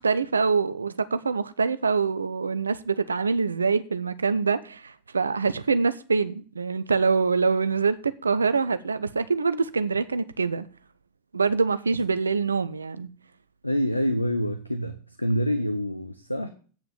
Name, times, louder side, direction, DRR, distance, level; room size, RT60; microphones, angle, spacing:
voice 1, 0.0-10.7 11.3-13.1, right 4 dB, 75° right, 0.7 m, -25 dB
voice 2, 13.6-16.5, equal, 90° left, 0.8 m, -26 dB
9.1 x 5.9 x 8.4 m
figure-of-eight pair, 90°, 0 cm